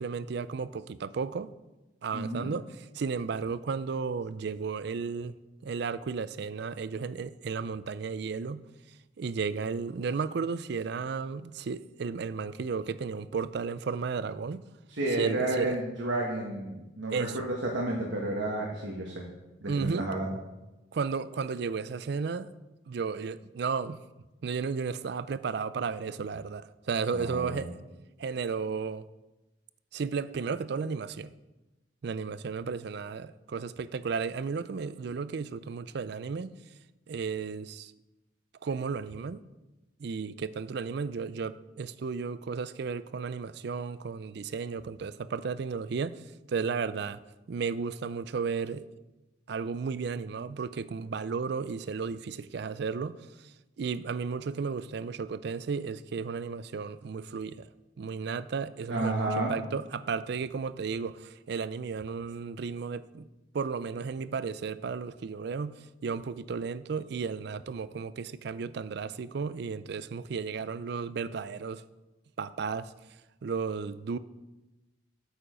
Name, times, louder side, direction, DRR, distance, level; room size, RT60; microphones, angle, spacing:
voice 1, 0.0-1.5 2.0-5.3 5.6-8.7 9.2-14.6 15.1-15.8 17.1-17.4 19.7-20.1 20.9-22.5 22.9-24.0 24.4-27.7 28.2-29.0 29.9-31.3 32.0-36.5 37.1-37.9 38.6-39.4 40.0-47.2 47.5-48.8 49.5-53.3 53.8-57.7 58.0-63.3 63.5-71.8 72.4-72.9 73.4-74.2, right 5 dB, 60° right, 0.4 m, -34 dB
voice 2, 2.1-2.5 14.9-19.2 19.6-20.3 27.1-27.7 58.9-59.6, right 2 dB, 85° right, 1.4 m, -31 dB
8.7 x 7.0 x 5.1 m
head